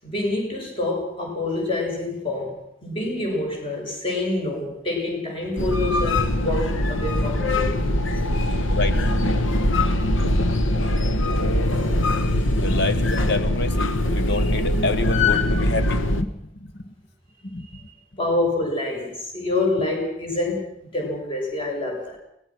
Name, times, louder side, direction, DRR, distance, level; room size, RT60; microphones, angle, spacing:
voice 1, 0.0-7.9 8.3-8.8 9.4-9.9 17.7-17.8 18.2-22.2, left 2 dB, 30° left, 0 dB, 7.2 m, -27 dB
sound 1, 5.6-16.2, left 1 dB, 80° left, 1.5 m, -22 dB
voice 2, 8.7-9.0 12.6-16.9 17.4-17.9, left 2 dB, 60° left, 9 dB, 1.8 m, -28 dB
23.5 x 19.0 x 6.2 m, 0.73 s
head